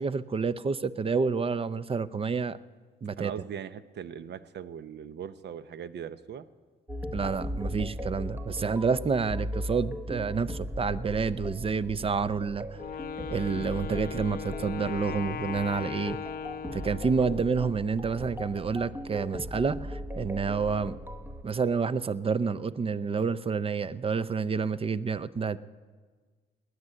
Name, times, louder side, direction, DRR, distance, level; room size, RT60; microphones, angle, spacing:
voice 1, 0.0-2.6 3.0-3.3 7.1-12.7 13.3-16.2 16.7-21.0 21.4-25.6, right 5 dB, 30° right, 17 dB, 0.6 m, -29 dB
voice 2, 3.2-6.5, right 8 dB, 60° right, 14 dB, 0.8 m, -40 dB
sound 1, 6.9-21.4, equal, 10° right, 1.1 m, -38 dB
Wind instrument woodwind instrument, 12.7-17.6, left 8 dB, 50° left, 0.7 m, -38 dB
19.5 x 9.6 x 7.7 m, 1.5 s
cardioid pair, 90°, 20 cm